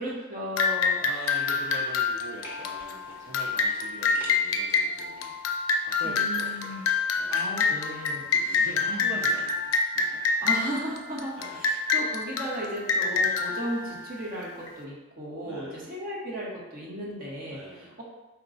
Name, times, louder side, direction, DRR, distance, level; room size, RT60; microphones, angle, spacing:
voice 1, 0.0-1.0 6.0-6.8 7.3-9.1 10.4-18.0, right 1 dB, 45° right, -4 dB, 1.0 m, -36 dB
sound 1, 0.6-14.7, left 4 dB, 90° left, 0.4 m, -27 dB
voice 2, 1.0-5.3 5.8-7.5 8.3-10.2 11.4-11.6 13.1-13.4 15.4-15.9 17.5-18.0, right 2 dB, 70° right, -4 dB, 0.6 m, -43 dB
sound 2, 1.7-2.1 2.4-5.3 5.7-7.5 7.9-9.4 9.7-9.8, left 1 dB, 10° right, 1.0 m, -48 dB
4.4 x 2.3 x 3.8 m, 1.1 s
head